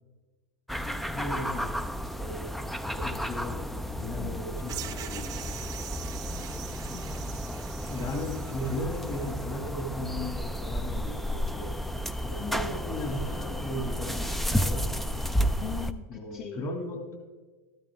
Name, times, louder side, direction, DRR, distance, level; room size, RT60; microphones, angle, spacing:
voice 1, 0.7-1.8 2.2-2.5 2.9-5.5 7.9-11.8 12.2-15.1 16.1-17.2, left 1 dB, 35° left, 5 dB, 2.1 m, -37 dB
sound 1, 0.7-15.9, equal, ahead, 0.5 m, -32 dB
voice 2, 4.2-4.5 6.2-6.6 6.9-7.4 15.6-16.6, left 9 dB, 65° left, 2 dB, 1.4 m, -41 dB
sound 2, 4.7-9.4, right 12 dB, 45° right, 0.8 m, -43 dB
13.0 x 12.5 x 3.6 m, 1.3 s
hypercardioid pair, 100°, 9 cm